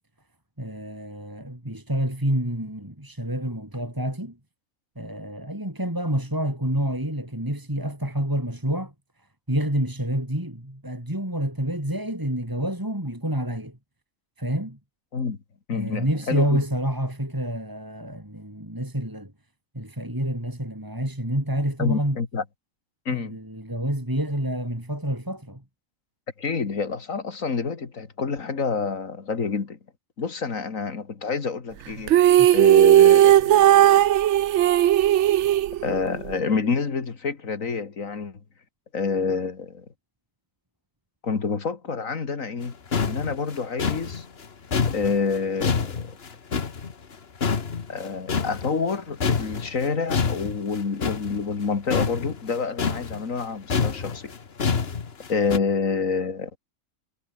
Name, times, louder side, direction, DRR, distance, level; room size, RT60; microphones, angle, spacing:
voice 1, 0.6-4.4 5.0-8.9 9.5-13.8 14.4-14.8 15.7-19.3 19.7-22.2 23.1-25.6 32.4-32.5, right 1 dB, 15° right, 4.5 m, -28 dB
voice 2, 15.7-16.6 21.8-22.4 23.1-23.3 26.4-29.8 30.2-32.1 32.5-34.0 35.8-38.4 38.9-39.9 41.2-44.2 44.9-46.2 47.9-54.3 55.3-56.6, left 5 dB, 80° left, 2.5 m, -28 dB
sound 1, 32.1-36.3, right 12 dB, 65° right, 0.9 m, -16 dB
sound 2, 42.6-42.7 42.9-47.2 47.4-49.0 49.2-55.6, left 5 dB, 50° left, 1.6 m, -27 dB
omnidirectional pair, 1.4 m